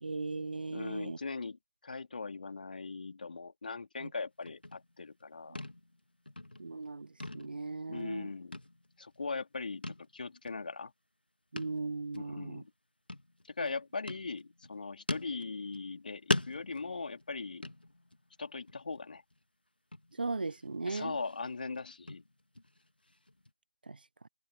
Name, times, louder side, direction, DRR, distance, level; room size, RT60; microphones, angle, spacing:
voice 1, 0.0-1.2 4.0-4.1 5.5-5.6 6.6-8.3 11.5-12.6 20.1-21.2 23.9-24.3, right 3 dB, 75° right, 1.0 m, -38 dB
voice 2, 0.7-5.6 7.9-8.6 9.0-10.9 12.1-12.7 13.5-17.6 18.4-19.2 20.9-22.2, left 4 dB, 65° left, 2.6 m, -40 dB
sound 1, 4.5-5.3 5.6-6.0 6.3-6.9 7.2-8.2 8.5-9.2 9.8-10.1 10.4-10.6 11.6-11.9 12.1-12.3 13.1-13.7 14.1-14.7 15.1-16.0 16.3-18.3 18.7-19.0 19.3-19.4 19.9-20.6 21.0-23.5, left 1 dB, 90° left, 2.3 m, -40 dB
figure-of-eight pair, 150°, 5 cm